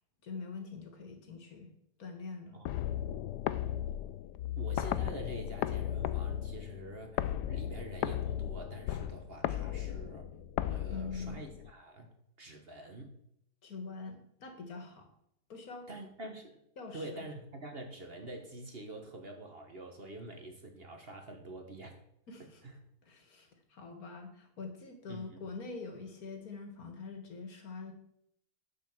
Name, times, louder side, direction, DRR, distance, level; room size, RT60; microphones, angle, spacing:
voice 1, 0.2-1.7 2.0-2.6 10.9-11.5 13.6-15.1 15.5-15.9 16.8-17.2 22.3-22.6 23.0-27.9, left 4 dB, 65° left, 5 dB, 2.1 m, -44 dB
sound 1, 2.7-11.7, left 11 dB, 85° left, 1.2 m, -36 dB
voice 2, 4.6-10.3 10.7-13.2 15.9-16.6 16.9-22.0 22.4-22.8 25.1-25.4, right 2 dB, 40° right, 4 dB, 1.5 m, -46 dB
10.0 x 5.5 x 7.1 m, 0.74 s
omnidirectional pair, 1.7 m